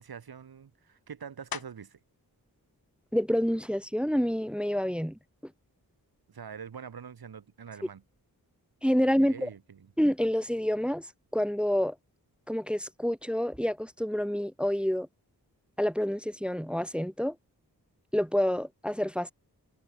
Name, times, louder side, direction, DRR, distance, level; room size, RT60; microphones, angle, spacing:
voice 1, 0.0-2.0 6.3-8.0 9.2-9.9, right 7 dB, 70° right, 1.0 m, -44 dB
sound 1, 1.5-2.1 2.7-7.1 7.6-12.8 13.1-18.7, left 6 dB, 65° left, 1.2 m, -52 dB
voice 2, 3.1-5.2 8.8-9.5 10.0-11.1 11.3-12.0 12.5-15.1 15.8-17.4 18.1-19.3, equal, 5° right, 0.3 m, -28 dB
wide cardioid pair, 55°, 38 cm